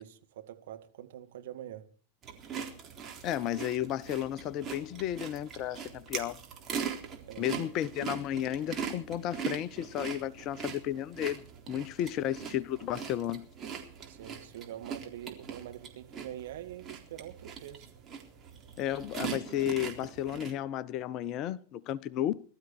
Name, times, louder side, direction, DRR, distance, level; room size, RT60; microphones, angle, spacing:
voice 1, 0.0-1.8 7.3-7.6 11.8-11.9 14.1-17.9, right 12 dB, 55° right, 2.1 m, -45 dB
sound 1, 2.2-20.5, right 7 dB, 25° right, 3.8 m, -41 dB
voice 2, 3.2-6.4 7.4-11.4 11.7-13.5 18.8-22.4, left 11 dB, 35° left, 0.7 m, -33 dB
21.0 x 13.0 x 4.6 m
figure-of-eight pair, 90°, 0 cm